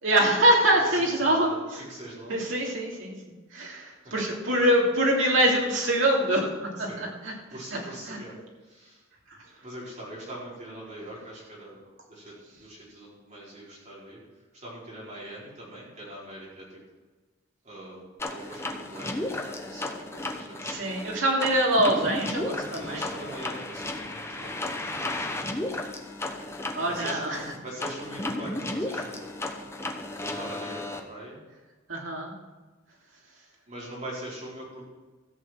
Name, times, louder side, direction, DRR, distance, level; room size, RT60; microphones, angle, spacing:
voice 1, 0.0-1.5 2.3-3.1 3.5-6.5 6.8-7.3 7.7-7.8 8.1-8.2 20.6-23.0 26.7-27.4 31.9-32.3, right 1 dB, 65° right, -2 dB, 3.1 m, -24 dB
voice 2, 0.9-2.7 3.9-4.2 4.6-4.7 6.8-7.0 7.5-9.0 9.6-11.8 12.1-14.2 14.5-16.8 17.6-20.7 22.8-25.5 26.9-29.3 30.1-31.4 33.7-34.8, right 1 dB, 35° right, -6 dB, 4.9 m, -42 dB
sound 1, 18.2-31.0, left 2 dB, 10° left, 0.9 m, -34 dB
14.0 x 6.5 x 7.7 m, 1.3 s
head